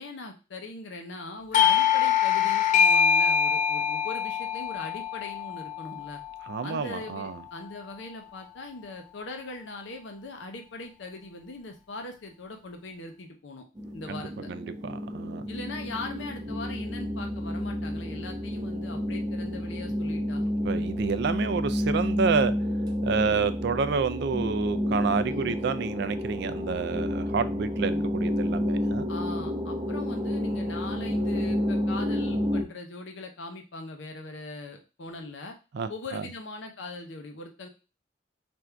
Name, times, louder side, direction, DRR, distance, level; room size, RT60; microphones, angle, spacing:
voice 1, 0.0-6.2 6.6-13.6 13.9-14.5 15.5-20.4 23.2-23.4 25.3-25.6 27.8-28.0 29.1-35.5 35.9-37.7, left 2 dB, 75° left, 0.7 m, -40 dB
Doorbell, 1.5-6.8, left 7 dB, 40° left, 0.3 m, -24 dB
voice 2, 6.5-7.4 14.1-14.2 14.5-15.4 20.6-22.5 23.0-29.1 35.7-36.2, right 5 dB, 60° right, 0.4 m, -29 dB
sound 1, 13.8-32.6, equal, 20° right, 0.6 m, -30 dB
3.5 x 2.6 x 4.4 m
head